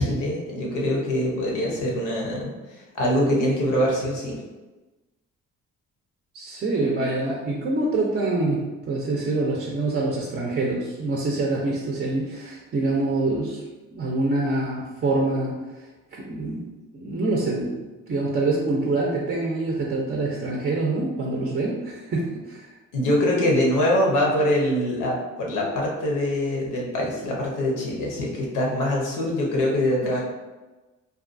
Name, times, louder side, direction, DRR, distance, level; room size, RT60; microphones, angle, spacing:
voice 1, 0.0-4.4 22.9-30.2, left 1 dB, 90° left, -2 dB, 0.8 m, -24 dB
voice 2, 6.3-13.6 13.9-15.5 16.1-16.6 16.9-17.7 18.1-22.7 30.0-30.2, right 2 dB, 35° right, -2 dB, 0.5 m, -25 dB
2.6 x 2.2 x 2.5 m, 1.2 s
cardioid pair, 90°, 30 cm